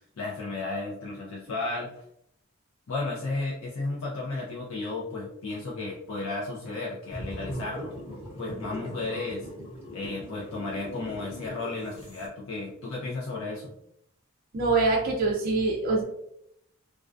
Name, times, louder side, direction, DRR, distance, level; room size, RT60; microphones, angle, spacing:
voice 1, 0.2-2.0 2.9-7.9 8.4-9.5 9.9-13.7, left 3 dB, 65° left, -5 dB, 0.5 m, -33 dB
sound 1, 7.1-12.3, equal, 25° left, 0.8 m, -40 dB
voice 2, 14.5-16.0, right 3 dB, 40° right, -2 dB, 0.3 m, -24 dB
2.3 x 2.2 x 2.4 m, 0.76 s
head